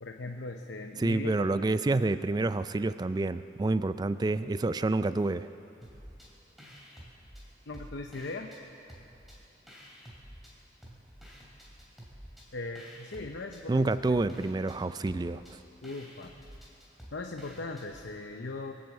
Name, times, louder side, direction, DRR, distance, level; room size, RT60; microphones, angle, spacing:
voice 1, 0.0-1.6 7.7-8.5 12.5-13.9 15.8-16.3 17.1-18.7, left 2 dB, 75° left, 3 dB, 0.8 m, -39 dB
voice 2, 1.0-5.5 13.7-15.4, right 2 dB, 20° right, 13 dB, 0.3 m, -28 dB
sound 1, 5.8-6.3 6.6-8.6 8.9-10.5 10.8-18.1, equal, ahead, 2.7 m, -50 dB
22.5 x 7.7 x 8.0 m, 2.8 s
head